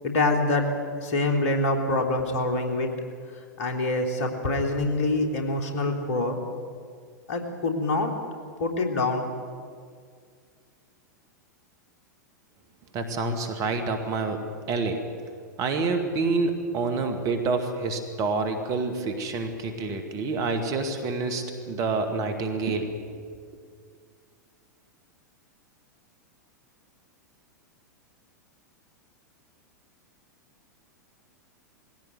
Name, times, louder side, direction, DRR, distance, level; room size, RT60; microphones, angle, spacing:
voice 1, 0.0-0.6 1.0-2.9 3.6-6.4 7.3-8.1 8.6-9.2, left 2 dB, 50° left, 3 dB, 3.3 m, -25 dB
voice 2, 12.9-14.4 14.7-15.0 15.6-23.2, right 3 dB, 35° right, 7 dB, 2.5 m, -28 dB
21.0 x 16.5 x 9.4 m, 2.1 s
figure-of-eight pair, 95°, 10 cm